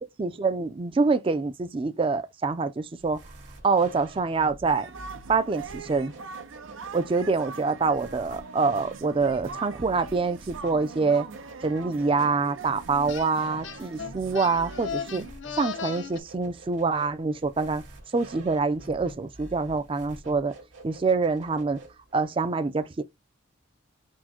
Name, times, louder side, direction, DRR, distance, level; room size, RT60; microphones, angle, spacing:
voice 1, 0.2-3.2 3.6-4.9 5.3-6.1 6.9-11.3 11.6-15.2 15.6-17.8 18.1-20.5 20.8-21.8 22.1-23.0, right 4 dB, 25° right, 0.4 m, -25 dB
sound 1, 3.0-22.2, right 2 dB, 70° right, 1.8 m, -48 dB
sound 2, 4.7-15.3, right 5 dB, 85° right, 0.6 m, -42 dB
sound 3, 13.1-13.3 13.6-16.2, left 6 dB, 65° left, 0.5 m, -36 dB
4.5 x 2.1 x 4.2 m
head